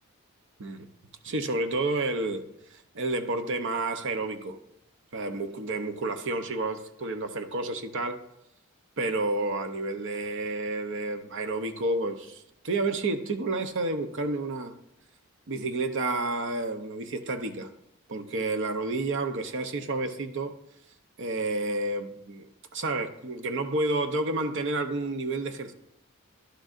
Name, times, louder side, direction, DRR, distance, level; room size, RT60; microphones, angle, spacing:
voice 1, 1.2-4.6 5.1-8.2 9.0-14.7 15.5-17.7 18.1-20.6 21.2-25.7, right 2 dB, 55° right, 8 dB, 0.7 m, -30 dB
11.0 x 6.3 x 2.5 m, 0.82 s
head